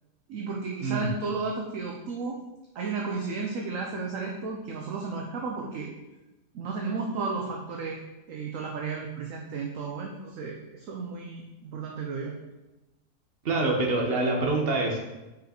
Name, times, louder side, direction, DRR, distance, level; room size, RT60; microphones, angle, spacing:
voice 1, 0.3-2.4 2.7-5.9 6.5-8.0 8.3-12.3, right 4 dB, 60° right, 1 dB, 1.0 m, -33 dB
voice 2, 13.4-15.0, right 2 dB, 40° right, 0 dB, 1.2 m, -25 dB
5.7 x 5.2 x 4.4 m, 1.0 s
omnidirectional pair, 1.8 m